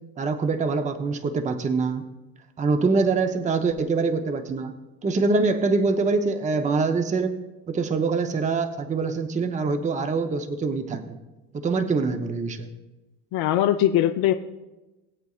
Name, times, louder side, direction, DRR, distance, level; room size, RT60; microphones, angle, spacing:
voice 1, 0.2-2.1 2.6-7.4 7.7-11.2 11.5-12.7, right 4 dB, 15° right, 8 dB, 0.7 m, -24 dB
voice 2, 13.3-14.3, left 12 dB, 55° left, 5 dB, 0.6 m, -21 dB
19.5 x 7.9 x 2.4 m, 1.1 s
cardioid pair, 125°, 44 cm